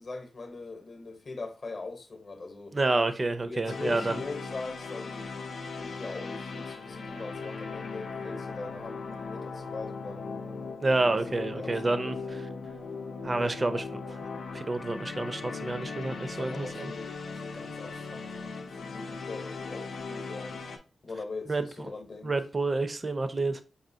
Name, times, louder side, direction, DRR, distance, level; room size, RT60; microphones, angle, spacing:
voice 1, 0.0-2.8 3.4-10.4 11.3-12.2 16.1-20.6 21.0-22.3, left 3 dB, 45° left, 0.8 m, -42 dB
voice 2, 2.7-4.2 10.8-12.2 13.2-14.2 14.5-16.9 21.5-21.7 22.2-23.6, right 2 dB, 25° right, 0.4 m, -29 dB
sound 1, 3.6-20.8, left 4 dB, 80° left, 0.6 m, -38 dB
5.5 x 2.8 x 2.6 m
wide cardioid pair, 160°, 0 cm